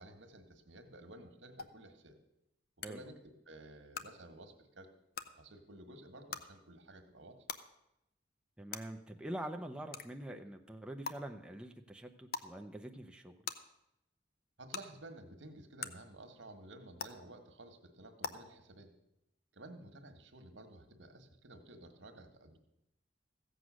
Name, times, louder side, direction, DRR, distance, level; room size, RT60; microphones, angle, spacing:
voice 1, 0.0-2.2 2.9-3.2 3.5-4.9 5.4-7.4 14.6-18.9 19.5-22.6, right 1 dB, 90° right, 6 dB, 1.5 m, -53 dB
sound 1, 1.6-1.7 2.8-2.9 3.9-4.0 5.1-5.2 6.3-6.4 7.5-7.6 8.7-8.8 9.9-10.0 11.0-11.1 12.3-12.5 13.4-13.5 14.7-14.8 15.8-15.9 17.0-17.1 18.2-18.3, left 6 dB, 55° left, 0.7 m, -39 dB
voice 2, 8.6-13.3, right 1 dB, 5° right, 3 dB, 0.7 m, -45 dB
15.0 x 7.9 x 6.3 m, 0.85 s
head